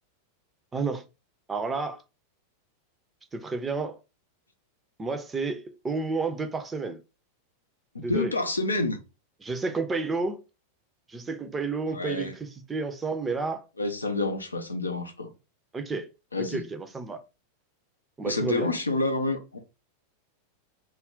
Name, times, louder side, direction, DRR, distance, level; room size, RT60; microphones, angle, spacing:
voice 1, 0.7-1.0 1.5-2.0 3.3-4.0 5.0-7.0 8.0-8.3 9.4-10.4 11.1-13.6 15.7-16.1 16.5-17.2 18.2-18.7, right 4 dB, 15° right, 0.5 m, -31 dB
voice 2, 7.9-9.0 11.9-12.3 13.8-15.3 16.3-16.7 18.2-19.6, left 2 dB, 80° left, 0.5 m, -28 dB
2.3 x 2.1 x 3.6 m
figure-of-eight pair, 90°, 0 cm